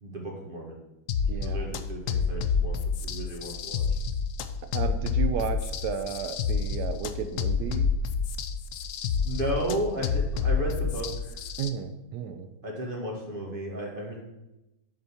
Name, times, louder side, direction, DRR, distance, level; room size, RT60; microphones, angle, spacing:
voice 1, 0.0-0.8 1.4-2.8 3.0-3.8 9.2-11.4 12.6-14.2, equal, 30° right, -1 dB, 1.8 m, -33 dB
sound 1, 1.1-11.7, left 6 dB, 75° left, 0.7 m, -29 dB
voice 2, 1.3-1.7 4.7-7.9 11.6-12.5, right 7 dB, 70° right, 9 dB, 1.1 m, -33 dB
7.8 x 4.1 x 7.0 m, 0.94 s
omnidirectional pair, 2.0 m